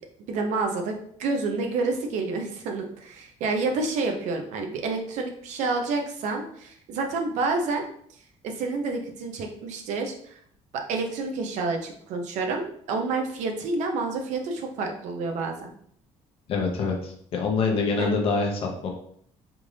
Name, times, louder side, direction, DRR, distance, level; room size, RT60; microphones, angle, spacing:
voice 1, 0.3-7.8 8.4-10.1 10.7-15.7 18.0-18.2, right 3 dB, 70° right, 4 dB, 0.7 m, -29 dB
voice 2, 16.5-18.9, left 4 dB, 45° left, 1 dB, 0.8 m, -25 dB
3.6 x 2.5 x 3.2 m, 0.64 s
cardioid pair, 165°, 13 cm